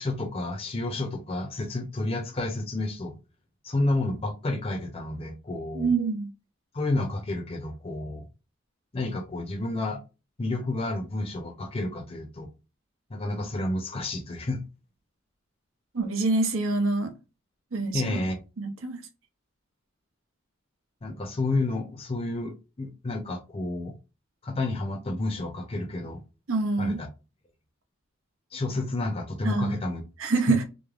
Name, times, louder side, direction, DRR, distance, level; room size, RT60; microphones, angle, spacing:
voice 1, 0.0-3.1 3.6-5.9 6.7-8.3 8.9-10.0 10.4-12.5 13.1-14.6 17.9-18.4 21.0-23.9 24.4-26.2 26.8-27.1 28.5-30.0 30.5-30.6, left 2 dB, 30° left, 0.5 m, -30 dB
voice 2, 5.7-6.3 15.9-17.2 17.7-18.2 18.6-19.0 26.5-27.0 29.4-29.8 30.2-30.6, right 3 dB, 85° right, 0.7 m, -26 dB
3.2 x 2.1 x 2.3 m
head